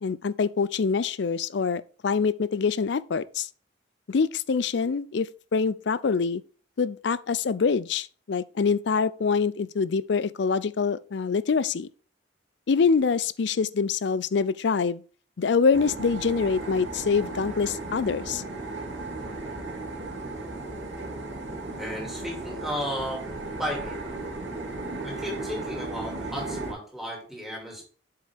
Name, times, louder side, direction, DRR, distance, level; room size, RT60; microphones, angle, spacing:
voice 1, 0.0-3.5 4.1-6.4 6.8-11.9 12.7-15.0 15.4-18.4, left 5 dB, 65° left, 0.4 m, -25 dB
sound 1, 15.7-26.7, right 2 dB, 70° right, 2.6 m, -35 dB
voice 2, 21.8-23.3 23.6-24.0 25.0-27.8, equal, ahead, 2.5 m, -34 dB
7.6 x 5.5 x 3.5 m
head